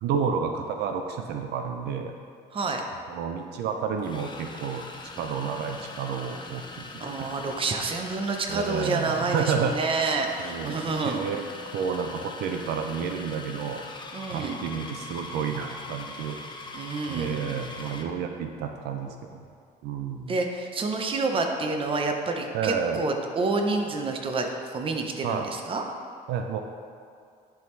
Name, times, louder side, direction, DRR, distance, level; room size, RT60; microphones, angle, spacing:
voice 1, 0.0-2.1 3.1-4.8 5.1-6.9 7.2-7.3 8.5-9.7 10.4-11.4 11.7-13.8 14.3-16.4 17.1-19.4 19.8-20.3 22.5-23.0 25.2-25.4 26.3-26.6, right 6 dB, 75° right, 4 dB, 0.5 m, -30 dB
voice 2, 2.5-2.8 7.0-11.2 14.1-14.6 16.7-17.3 20.3-25.8, right 3 dB, 30° right, 3 dB, 0.7 m, -28 dB
Food Processor, 2.7-2.8 4.0-18.2, left 3 dB, 25° left, 0.6 m, -42 dB
10.5 x 3.6 x 3.2 m, 2.3 s
cardioid pair, 110°, 17 cm